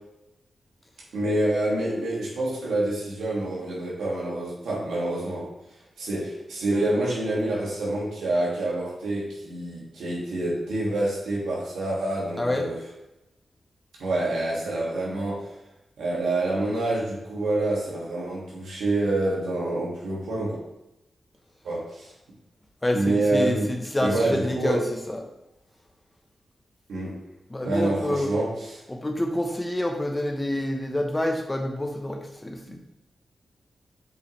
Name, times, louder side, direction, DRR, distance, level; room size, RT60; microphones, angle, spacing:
voice 1, 1.1-5.5 6.0-12.8 14.0-15.5 16.0-20.6 21.6-22.1 22.9-23.7 24.0-24.8 26.9-27.2 27.6-28.5 32.7-32.8, right 2 dB, 85° right, -5 dB, 2.1 m, -27 dB
voice 2, 22.8-25.2 27.5-28.3 28.9-32.8, left 1 dB, 20° left, 2 dB, 1.1 m, -27 dB
7.1 x 4.7 x 3.3 m, 0.91 s
supercardioid pair, 45°, 0 cm